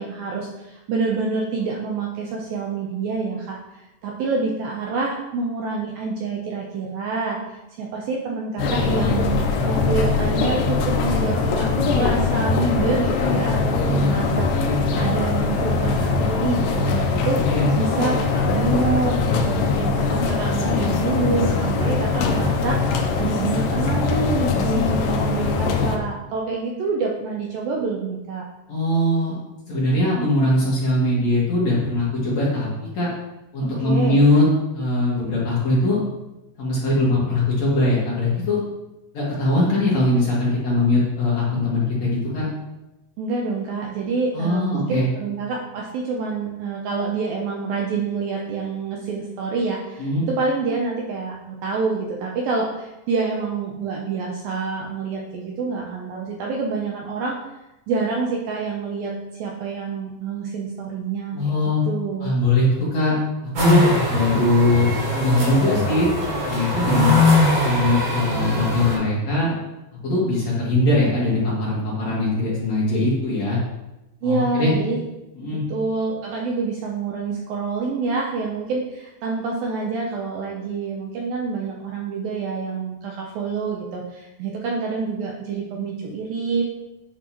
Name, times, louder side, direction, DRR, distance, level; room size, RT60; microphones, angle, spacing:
voice 1, 0.0-7.4 7.8-14.5 15.0-17.4 17.8-19.2 19.4-22.9 23.2-28.5 33.6-34.2 43.2-57.4 57.9-59.1 59.4-61.4 61.9-62.4 74.2-75.0 75.7-86.6, right 4 dB, 75° right, -1 dB, 2.2 m, -27 dB
sound 1, 8.6-26.0, left 4 dB, 85° left, 1.9 m, -22 dB
voice 2, 13.8-14.2 14.5-14.8 17.5-17.7 28.7-29.4 29.7-32.7 32.9-33.1 33.5-34.4 34.7-36.0 36.6-38.6 39.1-42.4 44.3-45.1 50.0-50.3 61.3-61.8 62.2-63.1 63.4-66.1 66.4-67.2 67.6-69.5 70.0-73.6 74.2-74.7 75.4-75.6, left 2 dB, 50° left, -7 dB, 2.4 m, -21 dB
sound 2, 63.5-69.0, left 1 dB, 55° right, 3.9 m, -21 dB
10.0 x 5.9 x 3.0 m, 0.97 s
omnidirectional pair, 4.8 m